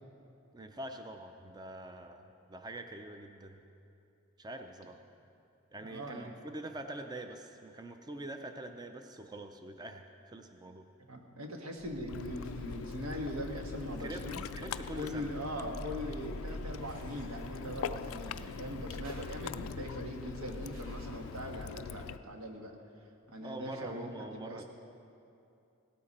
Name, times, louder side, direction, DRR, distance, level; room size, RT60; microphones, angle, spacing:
voice 1, 0.5-3.6 4.4-5.0 5.7-10.9 14.0-14.3 14.5-15.3 23.4-24.6, right 1 dB, 20° right, 6 dB, 0.5 m, -44 dB
voice 2, 5.8-6.3 11.0-14.5 14.9-22.8 23.3-24.6, equal, 90° right, 2 dB, 1.5 m, -41 dB
sound 1, 11.8-21.7, equal, 65° right, 3.2 m, -47 dB
Ocean, 12.1-22.2, left 7 dB, 70° left, 0.3 m, -43 dB
17.0 x 13.0 x 4.2 m, 2.7 s
head